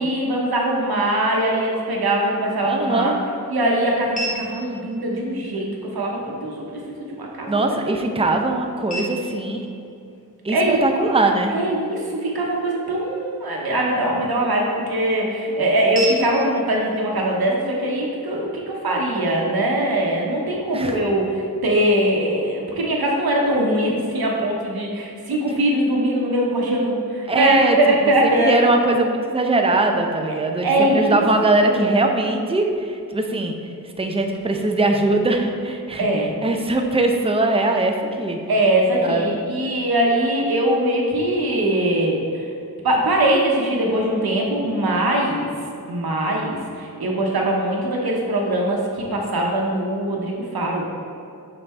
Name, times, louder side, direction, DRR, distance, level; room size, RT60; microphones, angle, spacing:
voice 1, 0.0-3.1 3.5-6.6 7.1-7.8 10.5-10.8 11.5-28.6 30.3-30.4 30.6-31.2 31.7-32.0 36.0-36.3 38.5-42.4 42.8-45.5 45.9-50.8, right 1 dB, 85° right, -2 dB, 0.9 m, -21 dB
sound 1, 2.4-18.4, right 1 dB, 20° left, 1.2 m, -39 dB
voice 2, 2.7-3.2 7.5-9.7 10.4-11.5 20.7-21.0 27.3-27.8 28.2-33.5 34.0-36.1 36.4-38.4 39.0-39.4, right 2 dB, 15° right, 3 dB, 0.5 m, -21 dB
5.5 x 4.1 x 4.3 m, 2.6 s
wide cardioid pair, 75°, 36 cm